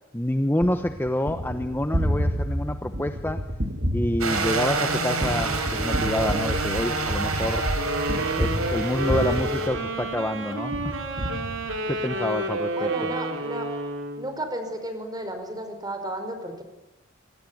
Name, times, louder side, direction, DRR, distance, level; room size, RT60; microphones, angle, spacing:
voice 1, 0.1-3.4 3.9-7.7 8.4-10.8 11.6-12.9, left 1 dB, 10° left, 8 dB, 1.0 m, -27 dB
Gunshot gunfire, 0.6-10.3 10.7-12.1, equal, 45° right, 2.9 m, -30 dB
sound 1, 4.2-9.7, right 3 dB, 85° right, 6.6 m, -28 dB
sound 2, 7.7-14.3, right 1 dB, 60° right, 4.7 m, -30 dB
voice 2, 12.7-13.7 14.2-16.6, right 1 dB, 20° right, 7 dB, 5.2 m, -33 dB
26.5 x 23.5 x 9.4 m, 1.0 s
head